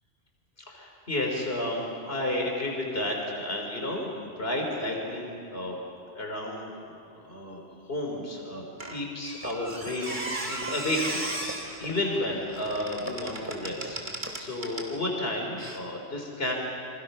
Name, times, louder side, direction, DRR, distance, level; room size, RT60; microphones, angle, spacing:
voice 1, 0.7-4.1 4.4-5.8 6.1-6.7 7.1-7.6 7.9-11.3 11.5-14.0 14.4-16.5, left 1 dB, 60° left, 0 dB, 4.1 m, -32 dB
Squeak, 8.8-15.0 15.6-15.8, right 2 dB, 45° right, 2.4 m, -37 dB
sound 1, 9.4-14.4, right 1 dB, 10° right, 3.0 m, -44 dB
29.5 x 26.0 x 5.6 m, 2.5 s
omnidirectional pair, 1.2 m